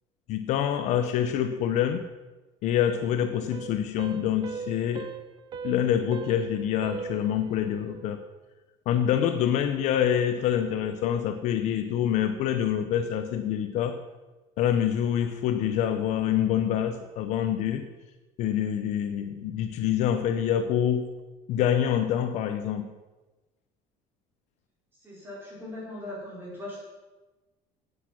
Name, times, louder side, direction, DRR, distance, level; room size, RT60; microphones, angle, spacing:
voice 1, 0.3-2.0 2.6-5.1 5.6-8.2 8.9-14.0 14.6-17.9 18.4-21.1 21.5-22.9, left 9 dB, 50° left, 8 dB, 0.8 m, -26 dB
sound 1, 3.3-8.2, right 6 dB, 30° right, 0.7 m, -40 dB
voice 2, 25.0-26.8, left 1 dB, 15° right, -5 dB, 4.6 m, -39 dB
11.0 x 8.4 x 6.0 m, 1.1 s
cardioid pair, 170°, 15 cm